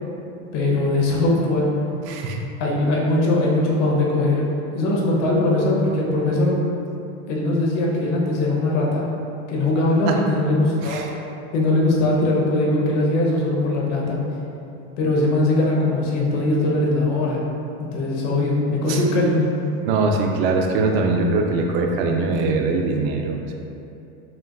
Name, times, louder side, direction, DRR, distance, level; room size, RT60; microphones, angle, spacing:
voice 1, 0.5-1.7 2.6-4.4 4.7-6.6 7.3-9.0 9.5-11.0 11.5-14.2 15.0-17.4 17.9-19.5, left 2 dB, 80° left, -3 dB, 1.0 m, -20 dB
voice 2, 2.1-2.4 10.1-10.2 10.8-11.2 18.9-19.0 19.9-23.5, right 3 dB, 55° right, 2 dB, 0.4 m, -22 dB
5.8 x 2.5 x 2.3 m, 2.7 s
supercardioid pair, 150°, 36 cm